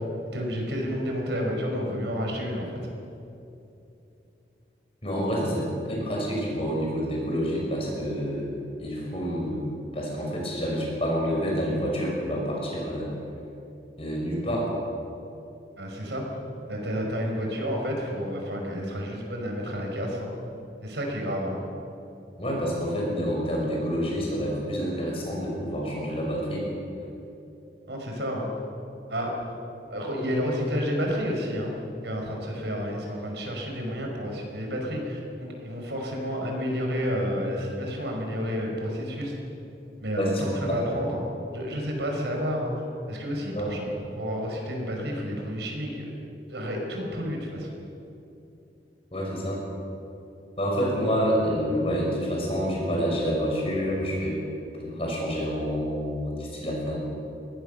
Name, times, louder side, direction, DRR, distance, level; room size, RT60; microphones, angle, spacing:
voice 1, 0.3-2.8 15.8-16.2 16.7-20.3 20.8-21.6 27.9-28.5 29.1-29.3 29.9-31.7 32.0-39.3 40.0-41.2 41.5-42.7 43.1-43.9 44.1-46.1 46.5-47.7, equal, 85° right, 1 dB, 5.4 m, -30 dB
voice 2, 5.0-8.5 8.8-9.6 9.9-13.1 14.0-14.7 22.4-26.7 40.2-40.4 43.5-43.8 49.1-49.6 50.6-54.3 54.8-57.0, equal, 35° left, -2 dB, 6.4 m, -28 dB
23.5 x 18.5 x 6.8 m, 2.9 s
head